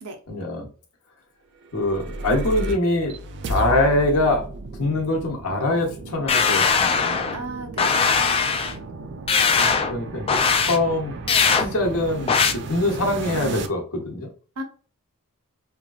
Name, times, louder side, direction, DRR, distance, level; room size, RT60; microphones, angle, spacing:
voice 1, 0.3-0.7 1.7-3.2 3.5-4.4 4.8-7.3 9.5-11.2 11.5-14.3, left 2 dB, 70° left, 1 dB, 1.0 m, -24 dB
sound 1, 1.6-13.7, right 2 dB, 50° right, 0.4 m, -34 dB
sound 2, 6.3-7.4 7.8-8.7 9.3-9.9 10.3-10.8 11.3-11.7 12.3-12.5, left 5 dB, 25° left, 0.3 m, -20 dB
voice 2, 7.3-8.2 8.6-8.9 14.6-14.7, right 1 dB, 80° right, 3 dB, 0.8 m, -35 dB
3.1 x 2.5 x 2.3 m, 0.40 s
head